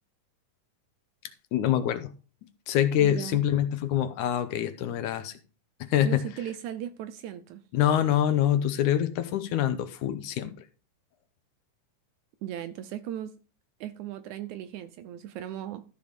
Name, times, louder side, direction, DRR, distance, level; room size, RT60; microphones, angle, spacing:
voice 1, 1.5-2.1 2.7-5.3 5.8-6.2 7.7-10.5, left 11 dB, 75° left, 2.1 m, -25 dB
voice 2, 3.0-3.4 6.0-7.6 12.4-13.3 13.8-15.8, right 11 dB, 75° right, 1.9 m, -37 dB
13.5 x 5.1 x 5.2 m
omnidirectional pair, 3.9 m